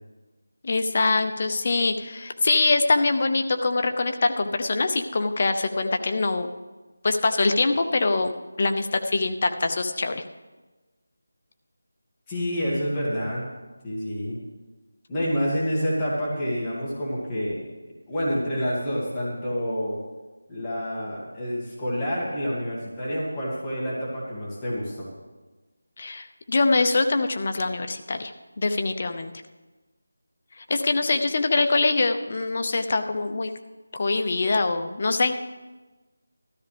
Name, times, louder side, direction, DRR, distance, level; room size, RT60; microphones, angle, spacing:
voice 1, 0.6-6.5 7.0-8.3 8.6-10.2 26.0-29.3 30.6-33.5 33.9-35.3, left 3 dB, 40° left, 7 dB, 0.7 m, -24 dB
voice 2, 12.3-13.5 13.8-14.4 15.1-17.6 18.1-20.0 20.5-25.1, equal, 15° left, -7 dB, 2.3 m, -28 dB
13.5 x 13.0 x 3.4 m, 1.2 s
figure-of-eight pair, 170°, 0 cm